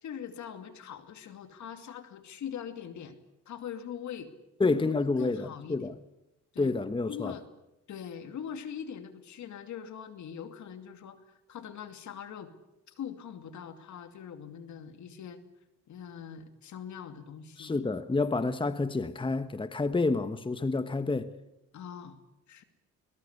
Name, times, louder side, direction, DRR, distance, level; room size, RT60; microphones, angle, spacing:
voice 1, 0.0-3.2 3.5-4.3 4.6-5.9 6.5-6.7 7.1-7.4 7.9-11.2 11.5-12.5 12.9-15.4 15.9-17.8 21.7-22.2 22.5-22.6, left 8 dB, 70° left, 2.7 m, -42 dB
voice 2, 4.6-6.0 6.6-7.3 17.6-21.3, left 3 dB, 15° left, 1.2 m, -29 dB
23.0 x 20.5 x 8.3 m
cardioid pair, 90°, 30 cm